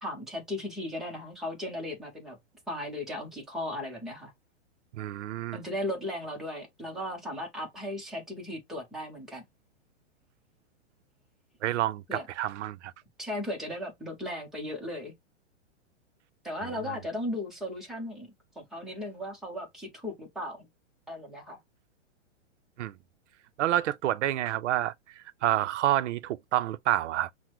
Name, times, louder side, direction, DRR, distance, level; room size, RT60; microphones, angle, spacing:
voice 1, 0.0-2.4 2.7-4.3 5.5-9.4 12.1-12.3 13.2-15.1 16.4-18.3 18.6-20.7 21.1-21.6, left 1 dB, ahead, 0.6 m, -36 dB
voice 2, 4.9-5.6 11.6-12.9 22.8-22.9 23.6-27.3, right 13 dB, 75° right, 0.5 m, -28 dB
5.8 x 2.1 x 2.9 m
hypercardioid pair, 160°, 36 cm